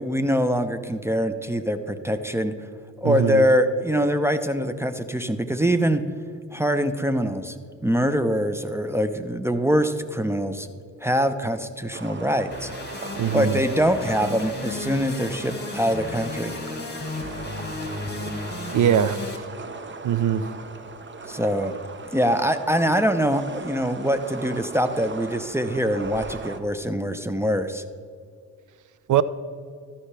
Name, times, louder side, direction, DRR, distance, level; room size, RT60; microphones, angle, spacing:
voice 1, 0.0-2.5 3.0-6.0 6.5-7.5 7.8-10.7 11.0-13.0 13.3-16.6 21.3-21.8 22.1-27.8, equal, 5° right, 0.8 m, -24 dB
voice 2, 3.0-3.4 13.2-13.6 18.7-19.2 20.0-20.5 29.1-29.2, right 9 dB, 50° right, 0.6 m, -21 dB
sound 1, 11.9-26.6, right 3 dB, 30° right, 1.0 m, -39 dB
sound 2, 12.5-19.4, left 2 dB, 25° left, 2.2 m, -34 dB
14.5 x 5.6 x 3.4 m
hypercardioid pair, 45°, 40 cm